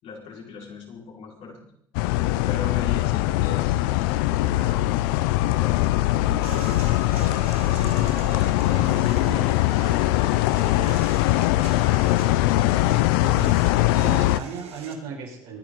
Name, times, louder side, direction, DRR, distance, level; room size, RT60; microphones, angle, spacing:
voice 1, 0.0-1.6 2.4-4.9 5.5-6.7 8.7-12.3, left 4 dB, 65° left, -2 dB, 5.4 m, -40 dB
sound 1, 1.9-14.4, left 16 dB, 85° left, 0.5 m, -21 dB
sound 2, 6.4-15.0, right 6 dB, 65° right, 2.1 m, -42 dB
voice 2, 7.8-8.2 8.7-9.5 13.2-15.6, right 5 dB, 85° right, -2 dB, 6.0 m, -37 dB
25.0 x 10.5 x 4.1 m, 0.71 s
hypercardioid pair, 70°, 11 cm